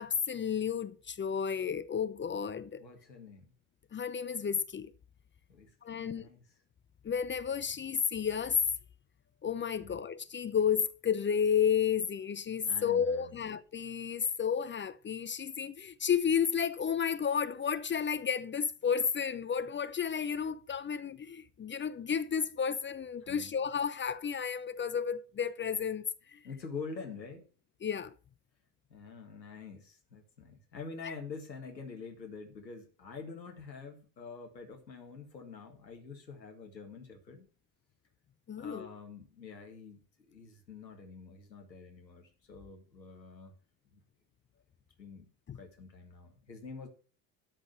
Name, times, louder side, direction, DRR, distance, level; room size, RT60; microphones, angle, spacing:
voice 1, 0.0-2.8 3.9-4.9 5.8-6.3 7.0-8.6 9.4-26.1 26.3-26.4 27.8-28.1 31.0-31.1 38.5-38.9 45.5-45.6, left 7 dB, 25° left, 0.7 m, -32 dB
voice 2, 2.8-3.5 5.5-6.4 9.8-10.0 12.6-13.4 23.2-23.6 26.4-27.5 28.9-37.5 38.6-43.6 43.9-44.0 45.0-46.9, left 5 dB, 90° left, 1.9 m, -46 dB
13.0 x 5.2 x 7.1 m
figure-of-eight pair, 65°, 50 cm